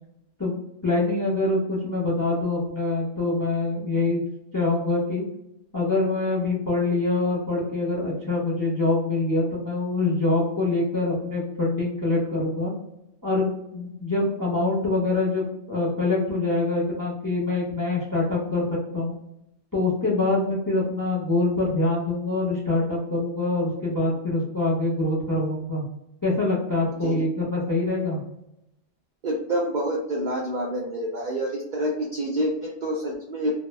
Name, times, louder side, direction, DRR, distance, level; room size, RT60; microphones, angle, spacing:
voice 1, 0.4-4.2 4.5-5.2 5.7-12.7 13.2-19.1 19.7-25.8 26.2-28.2, left 2 dB, 25° left, -5 dB, 0.4 m, -25 dB
voice 2, 29.2-33.6, equal, 70° right, -2 dB, 0.4 m, -27 dB
2.1 x 2.1 x 3.1 m, 0.83 s
omnidirectional pair, 1.3 m